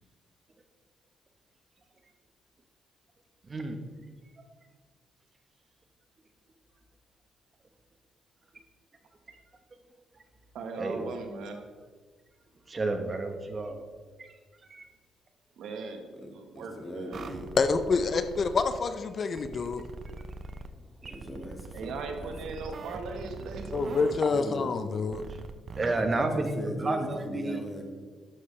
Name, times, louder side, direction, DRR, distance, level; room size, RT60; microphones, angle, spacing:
voice 1, 3.4-3.8 4.4-4.5 9.3-9.4 10.1-10.2 10.8-11.1 12.7-13.8 14.2-14.3 14.7-14.9 19.5-19.6 21.0-21.2 25.3-25.4 25.8-27.6, right 2 dB, 30° right, 6 dB, 1.1 m, -31 dB
voice 2, 10.5-11.6 15.6-17.2 21.7-24.0, right 3 dB, 80° right, 4 dB, 1.2 m, -39 dB
voice 3, 16.5-17.5 21.1-21.9 22.2-22.3 24.3-24.9 25.9-27.8, equal, 10° left, 1 dB, 1.8 m, -38 dB
sound 1, 17.1-18.8 19.4-20.7 21.0-24.2 25.1-25.9, right 3 dB, 50° right, 0.6 m, -42 dB
voice 4, 17.6-19.8 23.7-25.2, left 4 dB, 45° left, 10 dB, 0.5 m, -27 dB
11.5 x 6.7 x 3.3 m, 1.5 s
cardioid pair, 90°, 0 cm